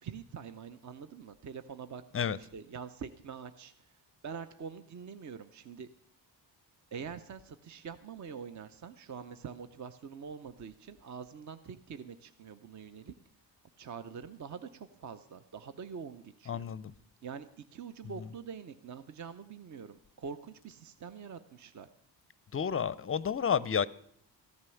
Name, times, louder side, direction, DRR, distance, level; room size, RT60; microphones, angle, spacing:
voice 1, 0.0-2.0 2.4-5.9 6.9-13.2 13.8-16.7 17.2-21.9, right 6 dB, 40° right, 0.7 m, -45 dB
voice 2, 16.5-16.9 22.5-23.9, left 7 dB, 30° left, 0.5 m, -30 dB
14.5 x 9.5 x 7.0 m
cardioid pair, 95°, 43 cm